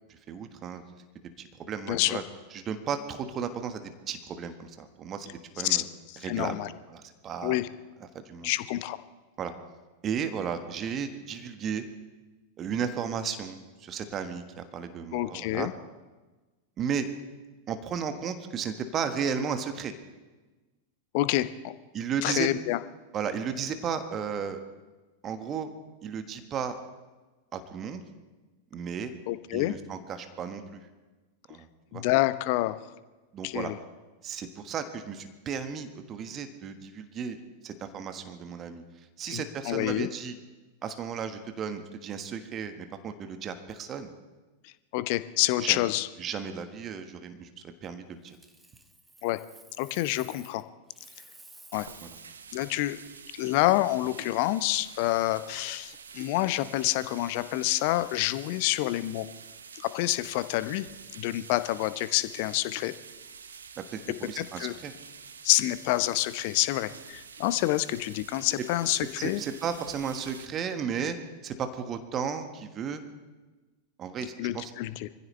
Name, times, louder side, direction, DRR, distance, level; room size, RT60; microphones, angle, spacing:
voice 1, 0.3-0.8 1.4-2.2 2.5-5.8 6.2-6.6 6.9-7.6 8.2-8.5 9.4-9.5 10.0-11.8 12.6-15.7 16.8-17.0 17.7-19.9 21.9-22.5 23.1-24.6 25.2-25.7 26.0-26.7 27.5-28.0 28.7-29.1 29.5-30.8 31.5-31.7 31.9-32.0 33.3-33.7 34.2-37.4 37.6-38.8 39.2-40.3 40.8-44.1 45.6-45.8 46.2-47.5 47.8-48.4 52.0-52.2 63.9-64.9 69.2-71.2 71.4-73.0 74.0-74.7, right 7 dB, 30° right, 8 dB, 1.5 m, -34 dB
voice 2, 1.9-2.2 5.6-5.8 6.1-6.7 7.4-7.7 8.4-9.0 15.1-15.7 21.1-21.7 22.2-22.8 29.3-29.7 31.9-32.8 33.4-33.8 39.3-40.1 44.6-46.1 49.2-49.4 49.8-50.6 51.7-51.9 52.5-53.0 53.3-59.3 59.8-60.9 61.1-62.9 64.4-64.7 65.4-69.4 74.4-75.1, left 16 dB, 45° left, 14 dB, 0.8 m, -28 dB
Coin (dropping), 48.2-50.6 50.9-52.3 55.2-55.4, right 2 dB, 5° right, 1.3 m, -53 dB
sound 1, 51.7-70.5, right 6 dB, 70° right, 1.0 m, -48 dB
25.0 x 15.5 x 3.3 m, 1.2 s
figure-of-eight pair, 90°, 0 cm